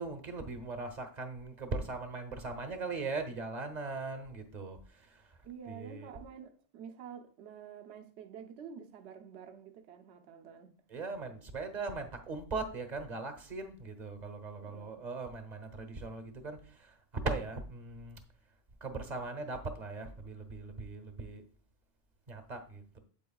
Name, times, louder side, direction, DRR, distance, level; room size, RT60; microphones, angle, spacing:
voice 1, 0.0-5.2 5.7-6.1 10.9-17.0 17.2-18.2 18.8-21.4 22.3-23.0, right 3 dB, 35° right, 1.0 m, -39 dB
voice 2, 5.4-10.7 14.6-15.0, right 7 dB, 60° right, 1.0 m, -49 dB
8.5 x 7.9 x 2.3 m
omnidirectional pair, 1.3 m